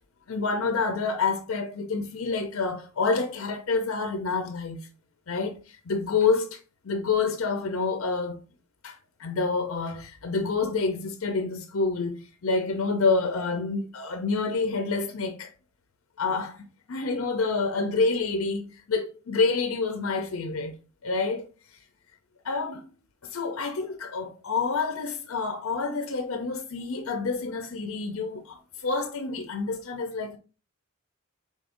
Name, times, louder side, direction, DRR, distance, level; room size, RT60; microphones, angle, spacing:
voice 1, 0.3-4.8 5.3-6.6 6.8-8.4 8.8-15.5 16.2-20.7 21.0-21.5 22.4-22.8 23.2-30.4, left 4 dB, 75° left, 0.6 m, -28 dB
5.0 x 3.7 x 2.6 m
head